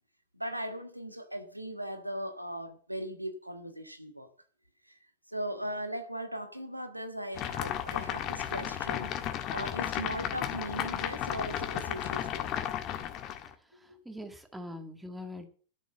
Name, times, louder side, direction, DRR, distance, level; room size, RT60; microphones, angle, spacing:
voice 1, 0.3-4.3 4.9-5.0 5.3-12.6, right 1 dB, 90° right, 1.4 m, -39 dB
sound 1, 7.3-13.5, left 10 dB, 35° left, 1.6 m, -34 dB
voice 2, 13.8-15.5, left 1 dB, 5° right, 2.0 m, -43 dB
12.5 x 7.1 x 7.4 m
figure-of-eight pair, 90°, 0 cm